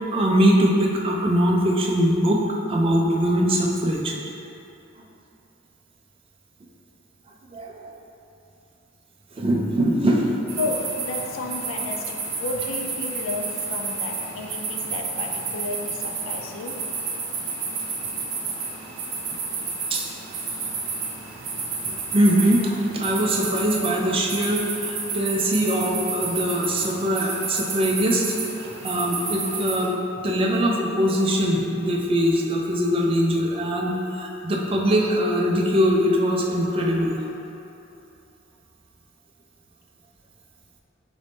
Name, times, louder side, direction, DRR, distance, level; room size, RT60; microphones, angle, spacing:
voice 1, 0.1-2.4 2.7-4.1 7.5-7.9 9.4-10.4 19.9-20.1 21.9-28.3 28.8-29.9 30.2-37.2, equal, 25° right, -1 dB, 0.4 m, -22 dB
sound 1, 10.5-29.9, right 4 dB, 70° right, 0.7 m, -31 dB
voice 2, 10.6-16.9, left 2 dB, 65° left, 3 dB, 0.4 m, -32 dB
4.1 x 2.6 x 3.4 m, 2.8 s
head